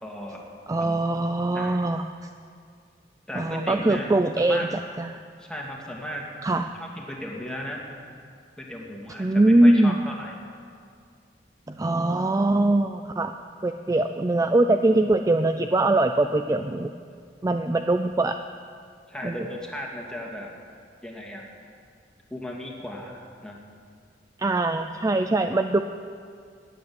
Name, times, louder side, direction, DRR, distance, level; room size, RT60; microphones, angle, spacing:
voice 1, 0.0-0.4 0.8-1.0 1.5-1.8 3.3-4.1 4.5-4.7 5.4-6.2 6.5-7.8 8.6-10.3 19.1-20.5 21.0-21.5 22.3-23.6, left 1 dB, 5° left, -2 dB, 2.3 m, -36 dB
voice 2, 0.7-2.0 3.4-4.7 5.0-5.1 6.4-6.7 9.2-10.0 11.7-13.3 13.6-16.9 17.4-18.4 19.2-19.3 24.4-25.8, right 2 dB, 20° right, 7 dB, 0.4 m, -22 dB
13.0 x 9.5 x 9.5 m, 2.2 s
head